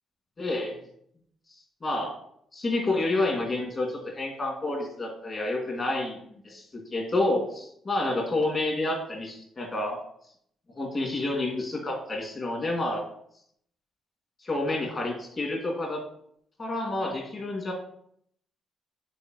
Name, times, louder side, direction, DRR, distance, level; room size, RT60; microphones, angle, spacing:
voice 1, 0.4-0.8 1.8-2.1 2.5-3.9 4.1-6.2 6.4-6.6 6.9-10.0 10.8-13.0 14.4-16.0 16.6-17.7, left 2 dB, 40° left, 1 dB, 2.1 m, -29 dB
7.0 x 4.6 x 3.0 m, 0.68 s
cardioid pair, 90°, 0 cm